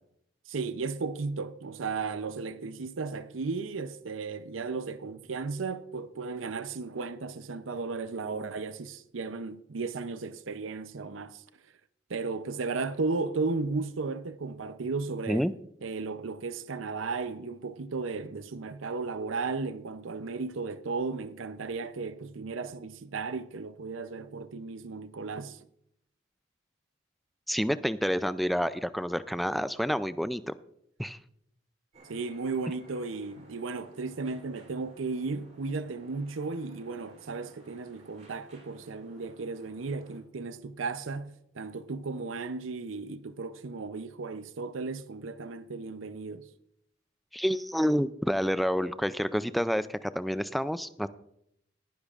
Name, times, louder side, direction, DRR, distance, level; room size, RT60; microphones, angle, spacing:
voice 1, 0.5-11.4 12.1-15.4 15.8-25.6 32.1-46.5, right 4 dB, 85° right, 0.6 m, -35 dB
voice 2, 27.5-30.5 31.0-31.2 47.3-51.1, equal, ahead, 0.3 m, -28 dB
sound 1, 31.9-40.2, right 1 dB, 35° right, 3.3 m, -56 dB
18.5 x 10.5 x 2.5 m
head